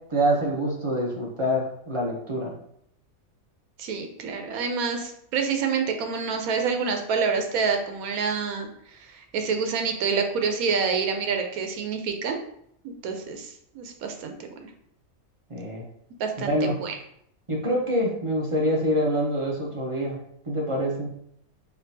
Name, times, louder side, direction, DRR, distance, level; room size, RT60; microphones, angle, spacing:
voice 1, 0.1-2.5 15.5-15.8 16.4-16.8 17.5-21.1, equal, 35° right, -2 dB, 0.5 m, -26 dB
voice 2, 3.8-12.4 12.8-14.3 14.6-14.7 16.2-16.9, right 5 dB, 85° right, 5 dB, 1.1 m, -27 dB
4.4 x 3.0 x 2.7 m, 0.71 s
omnidirectional pair, 1.5 m